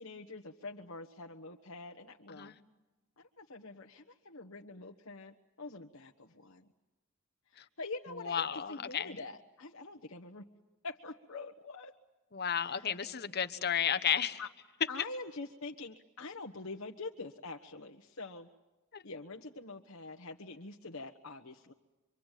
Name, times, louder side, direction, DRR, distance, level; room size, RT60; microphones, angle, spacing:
voice 1, 0.0-2.5 3.2-6.7 7.5-10.4 10.8-12.0 12.6-13.0 14.4-14.5 14.9-18.5 19.0-21.7, left 3 dB, 75° left, 1 dB, 1.4 m, -45 dB
voice 2, 8.2-9.2 12.3-14.4 18.9-19.0, left 8 dB, 50° left, 10 dB, 1.2 m, -33 dB
26.0 x 25.0 x 9.2 m, 1.1 s
head